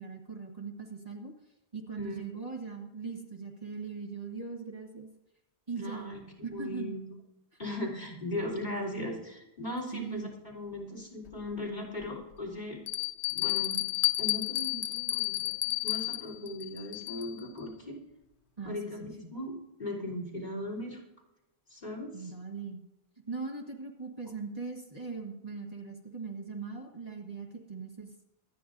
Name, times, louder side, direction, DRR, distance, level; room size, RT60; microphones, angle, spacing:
voice 1, 0.0-1.3 1.7-5.1 5.7-6.1 6.4-7.0 7.5-7.6 9.9-10.3 18.6-19.3 22.1-22.8 23.3-28.1, right 4 dB, 35° right, 0 dB, 1.8 m, -40 dB
voice 2, 5.8-6.2 6.5-7.1 7.6-10.3 10.5-12.8 13.3-13.8 14.2-18.0 18.6-19.5 19.8-21.0 21.7-22.1, left 1 dB, 45° left, -2 dB, 4.0 m, -38 dB
Bell, 11.3-11.4 12.0-12.1 12.9-17.4, left 15 dB, 85° left, 1.0 m, -31 dB
25.0 x 10.0 x 2.7 m, 0.94 s
omnidirectional pair, 1.1 m